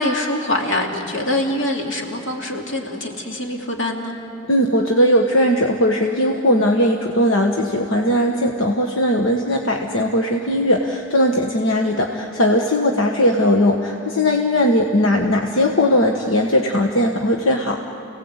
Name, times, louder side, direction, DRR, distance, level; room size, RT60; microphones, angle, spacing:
voice 1, 0.0-4.2, left 1 dB, 70° left, 0 dB, 2.9 m, -24 dB
voice 2, 4.5-17.8, left 1 dB, 90° left, 2 dB, 1.4 m, -18 dB
29.5 x 18.0 x 8.1 m, 2.8 s
head